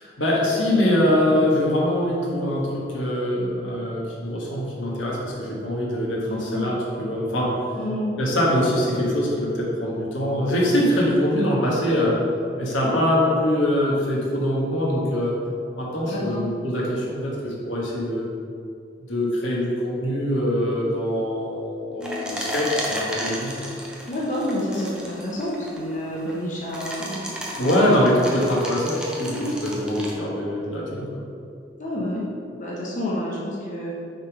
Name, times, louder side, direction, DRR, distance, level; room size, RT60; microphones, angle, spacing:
voice 1, 0.0-7.6 8.2-12.2 12.6-15.3 15.7-18.3 19.0-23.5 27.6-31.2, left 1 dB, 90° left, -4 dB, 1.4 m, -23 dB
voice 2, 6.3-6.7 7.7-8.1 12.8-13.0 16.0-16.4 22.0-22.3 24.1-27.2 27.6-28.0 28.3-28.4 29.3-29.5 31.8-32.2 32.6-33.9, left 1 dB, 40° left, -5 dB, 0.9 m, -29 dB
sound 1, 22.0-30.1, equal, 5° right, 0.6 m, -33 dB
6.5 x 3.6 x 4.8 m, 2.4 s
head